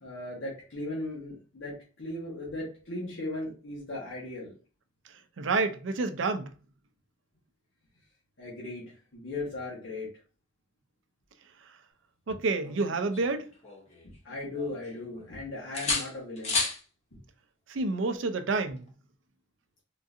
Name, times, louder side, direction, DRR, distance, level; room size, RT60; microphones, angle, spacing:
voice 1, 0.0-4.5 8.4-10.1 14.0-16.6 17.1-17.2, left 2 dB, 70° left, 1.1 m, -37 dB
voice 2, 5.4-6.5 12.3-13.5 17.7-18.8, right 3 dB, 65° right, 0.4 m, -29 dB
sound 1, 12.6-14.2 14.5-15.3 15.7-16.8 18.7-18.9, left 3 dB, 35° left, 0.8 m, -33 dB
3.8 x 2.6 x 2.4 m
head